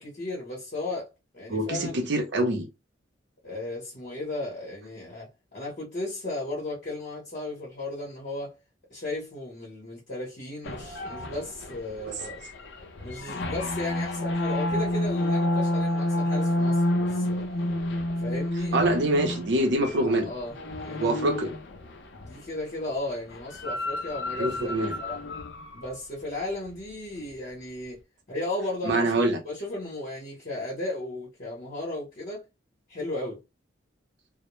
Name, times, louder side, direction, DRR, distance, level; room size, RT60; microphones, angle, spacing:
voice 1, 0.0-2.1 3.4-8.6 8.9-12.4 13.0-17.5 18.2-18.8 19.9-21.2 22.2-25.2 25.7-28.0 28.3-32.5 32.9-33.4, left 2 dB, 50° left, 0.8 m, -35 dB
voice 2, 1.5-2.6 18.7-20.3 21.0-21.5 24.4-25.0 28.8-29.4, right 1 dB, 65° right, 0.6 m, -25 dB
sound 1, 10.6-22.5 23.3-25.9, left 1 dB, 65° left, 0.4 m, -29 dB
2.1 x 2.0 x 2.9 m
head